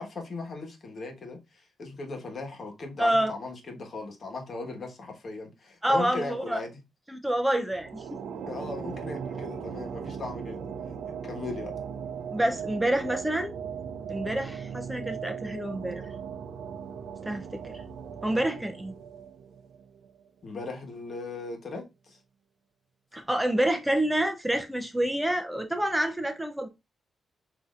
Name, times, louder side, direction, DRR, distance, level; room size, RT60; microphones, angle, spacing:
voice 1, 0.0-6.7 8.5-10.9 11.2-11.7 20.4-22.2, left 3 dB, 50° left, 1.3 m, -38 dB
voice 2, 3.0-3.3 5.8-6.6 7.1-8.0 12.3-13.5 14.1-16.0 17.3-17.8 18.2-18.9 23.1-26.7, right 1 dB, 5° right, 0.5 m, -27 dB
sound 1, 7.7-20.3, right 7 dB, 85° right, 0.4 m, -38 dB
6.1 x 2.7 x 2.4 m
cardioid pair, 100°, 0 cm